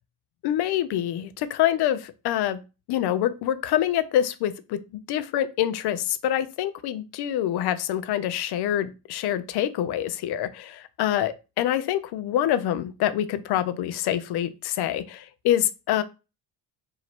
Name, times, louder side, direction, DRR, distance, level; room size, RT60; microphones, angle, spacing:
voice 1, 0.4-2.6 2.9-4.8 5.1-16.0, left 11 dB, 65° left, 13 dB, 0.6 m, -26 dB
2.9 x 2.8 x 4.3 m, 0.30 s
cardioid pair, 100°, 44 cm